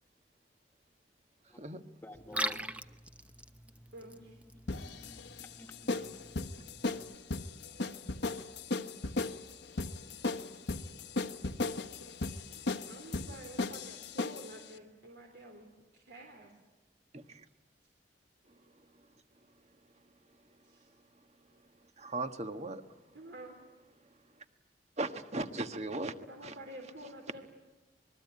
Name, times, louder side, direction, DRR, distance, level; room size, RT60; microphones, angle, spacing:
voice 1, 2.0-2.8 3.2-3.3 3.5-3.8 4.5-7.2, left 1 dB, 10° left, 5 dB, 1.6 m, -52 dB
Liquid, 2.1-7.1, right 1 dB, 10° right, 0.8 m, -42 dB
voice 2, 3.9-4.4 12.9-16.5 20.6-20.9 23.1-23.6 26.3-27.4, right 1 dB, 75° right, 2 dB, 3.6 m, -49 dB
sound 1, 4.7-14.6, left 3 dB, 70° left, 1.2 m, -36 dB
voice 3, 17.1-17.4 22.0-22.8 25.0-26.1 26.4-26.5, right 2 dB, 40° right, 8 dB, 1.4 m, -37 dB
26.5 x 21.5 x 9.6 m, 1.1 s
head